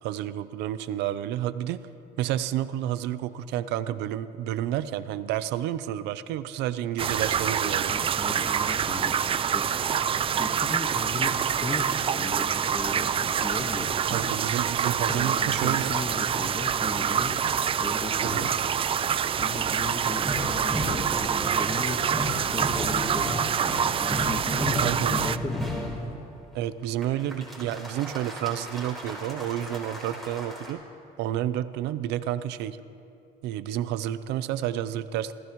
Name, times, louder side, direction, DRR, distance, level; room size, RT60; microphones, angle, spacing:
voice 1, 0.0-1.8 2.2-7.9 14.1-15.9 18.2-18.5 24.8-25.2 26.5-30.8 31.2-32.8 33.4-35.3, right 12 dB, 90° right, 13 dB, 0.6 m, -30 dB
sound 1, 7.0-25.4, right 8 dB, 35° right, 0.4 m, -26 dB
voice 2, 7.6-9.7 10.1-14.4 15.1-17.4 17.8-18.6 19.3-22.0 22.5-25.8, left 2 dB, 20° left, 2 dB, 1.5 m, -36 dB
sound 2, 20.2-26.1 27.0-30.7, equal, ahead, 4.5 m, -34 dB
29.5 x 15.0 x 3.1 m, 2.7 s
cardioid pair, 110°, 17 cm